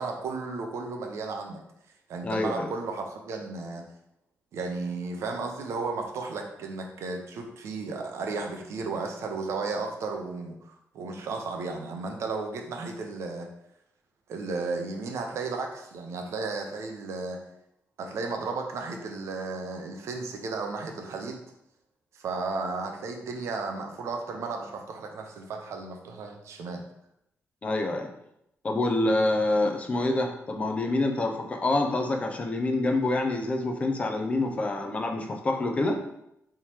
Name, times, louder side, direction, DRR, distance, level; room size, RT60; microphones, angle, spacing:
voice 1, 0.0-1.6 2.1-3.8 4.5-13.5 14.3-17.4 18.0-21.4 22.1-26.8, right 3 dB, 70° right, 3 dB, 0.7 m, -34 dB
voice 2, 2.2-2.7 27.6-28.1 28.6-36.0, left 2 dB, 25° left, 3 dB, 0.5 m, -26 dB
3.6 x 3.1 x 4.3 m, 0.80 s
wide cardioid pair, 155°, 5 cm